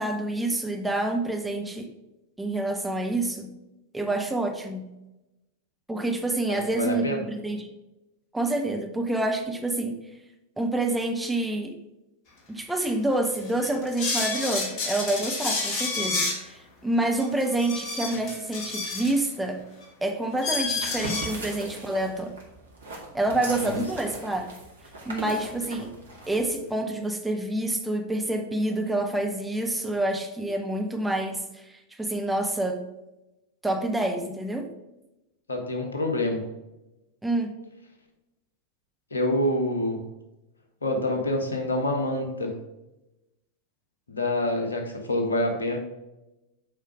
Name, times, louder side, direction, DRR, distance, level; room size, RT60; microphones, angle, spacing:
voice 1, 0.0-1.9 2.4-3.5 3.9-4.9 5.9-7.7 8.3-10.0 10.6-11.7 12.5-19.6 20.0-22.3 23.1-24.5 25.1-25.9 26.3-32.8 33.6-34.7 37.2-37.5, right 2 dB, 5° right, 4 dB, 0.8 m, -27 dB
voice 2, 6.5-7.2 23.3-23.8 35.5-36.4 39.1-40.0 40.8-42.5 44.1-45.8, left 1 dB, 75° left, 3 dB, 1.4 m, -27 dB
sound 1, 12.8-12.9 13.4-16.4 17.2-19.3 19.8-19.9 20.4-21.3, left 3 dB, 40° left, 1.8 m, -29 dB
sound 2, 20.6-26.7, right 1 dB, 70° right, 1.9 m, -39 dB
7.5 x 5.0 x 4.8 m, 0.98 s
figure-of-eight pair, 90°, 0 cm